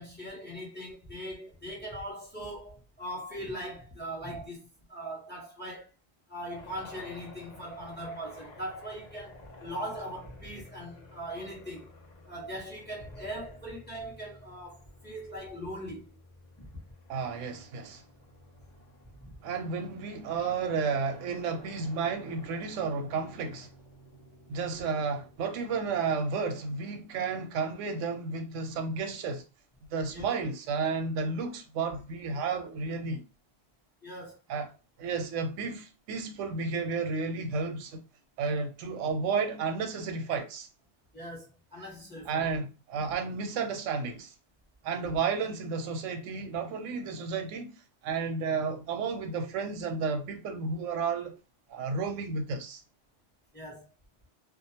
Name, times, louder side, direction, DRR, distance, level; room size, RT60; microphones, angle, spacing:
voice 1, 0.0-5.9 6.3-11.9 12.2-16.1 16.6-16.7 19.2-19.4 30.1-30.3 34.0-34.4 41.1-42.5 53.5-53.9, equal, 10° left, 0.8 m, -40 dB
sound 1, 6.5-26.2, left 2 dB, 45° left, 0.7 m, -53 dB
voice 2, 17.1-18.0 19.4-23.7 24.5-29.4 29.9-33.2 34.5-38.0 38.4-40.7 42.3-44.3 44.8-47.8 48.0-51.3 51.7-52.8, right 5 dB, 90° right, 0.9 m, -32 dB
2.4 x 2.1 x 2.7 m
omnidirectional pair, 1.2 m